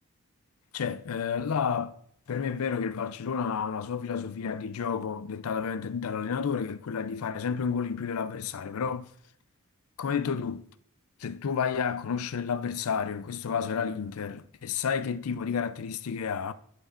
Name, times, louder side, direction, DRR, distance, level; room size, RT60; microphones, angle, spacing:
voice 1, 0.7-1.9 2.3-9.1 10.0-10.6 11.2-16.5, left 6 dB, 85° left, 0.5 m, -31 dB
11.0 x 4.6 x 2.5 m
head